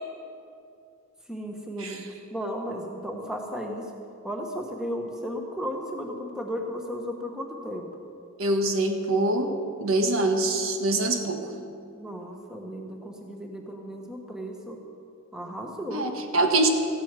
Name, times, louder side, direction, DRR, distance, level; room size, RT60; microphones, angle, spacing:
voice 1, 1.3-3.9 4.2-7.9 11.9-14.8 15.3-16.1, equal, 5° right, 1 dB, 1.3 m, -34 dB
voice 2, 8.4-9.5 9.8-11.4 15.9-16.7, right 2 dB, 75° right, 4 dB, 1.4 m, -24 dB
14.5 x 8.2 x 9.0 m, 2.4 s
head